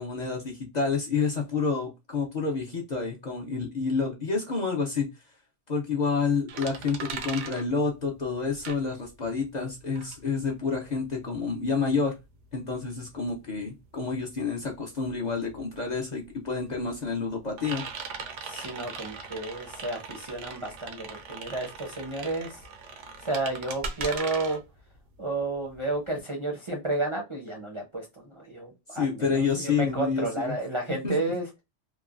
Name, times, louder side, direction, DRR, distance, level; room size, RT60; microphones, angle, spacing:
voice 1, 0.0-5.0 5.7-12.2 12.5-17.8 28.9-30.6 31.0-31.1, left 5 dB, 45° left, 0.6 m, -29 dB
sound 1, 6.5-9.4 9.7-26.1, right 5 dB, 85° right, 0.9 m, -40 dB
voice 2, 18.4-22.6 22.9-24.6 25.2-31.5, right 2 dB, 35° right, 0.5 m, -32 dB
3.0 x 2.2 x 2.4 m
omnidirectional pair, 1.2 m